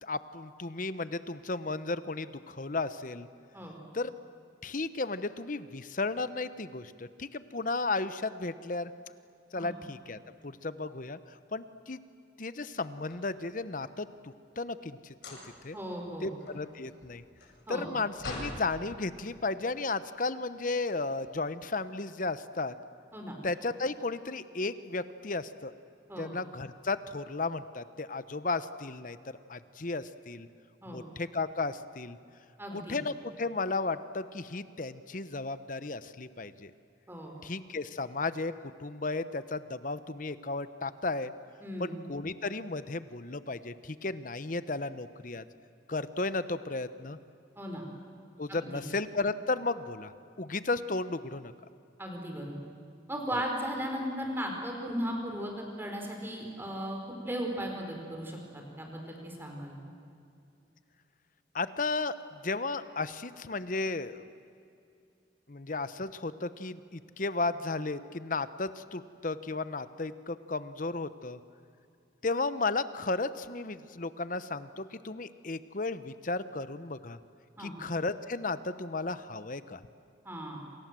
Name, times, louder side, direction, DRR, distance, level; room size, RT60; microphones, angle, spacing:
voice 1, 0.0-3.3 3.9-4.1 4.6-8.9 9.5-12.0 12.4-15.4 15.6-15.8 16.2-17.2 17.7-22.7 23.4-25.7 26.2-30.5 30.9-32.2 32.7-36.7 37.4-41.3 41.8-45.4 45.9-47.2 48.4-50.1 50.4-51.5 53.3-53.4 61.5-64.3 65.5-71.4 72.2-77.2 77.6-79.8, left 3 dB, 45° left, 13 dB, 0.9 m, -34 dB
sound 1, 12.7-13.9 15.1-15.7 16.1-18.6, left 1 dB, 70° left, 7.1 m, -44 dB
voice 2, 15.7-16.3 17.7-17.9 23.1-23.4 26.1-26.3 30.8-31.0 32.6-33.0 37.1-37.3 41.6-42.0 47.6-47.8 48.5-48.8 52.0-52.6 53.1-57.0 57.2-59.7 77.6-77.7 80.2-80.6, equal, 10° right, 1 dB, 4.8 m, -36 dB
28.0 x 27.5 x 7.7 m, 2.5 s
head